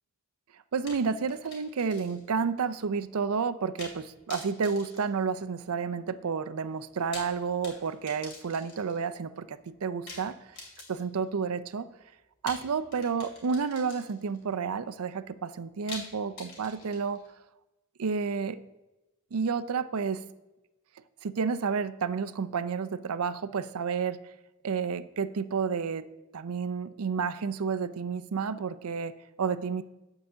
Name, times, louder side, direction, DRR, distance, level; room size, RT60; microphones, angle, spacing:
voice 1, 0.7-10.4 10.9-11.9 12.4-17.2 18.0-18.6 19.3-20.2 21.2-24.2 24.6-26.0 26.3-29.8, right 5 dB, 85° right, 12 dB, 0.5 m, -30 dB
sound 1, 0.9-2.4 2.7-2.8 3.8-4.0 4.3-5.8 6.9-9.0 10.1-11.2 12.5-14.4 15.9-17.3, left 3 dB, 55° left, 3.0 m, -46 dB
9.5 x 4.9 x 6.8 m, 1.0 s
head